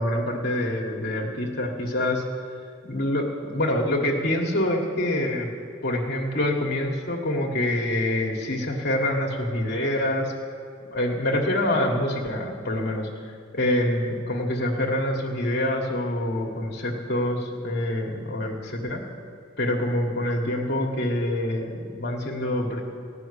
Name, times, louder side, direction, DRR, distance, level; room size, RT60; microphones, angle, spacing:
voice 1, 0.0-2.2 2.8-5.5 5.8-10.5 10.9-19.0 19.6-22.8, left 1 dB, 55° left, -1 dB, 1.5 m, -26 dB
16.0 x 5.9 x 9.8 m, 2.4 s
head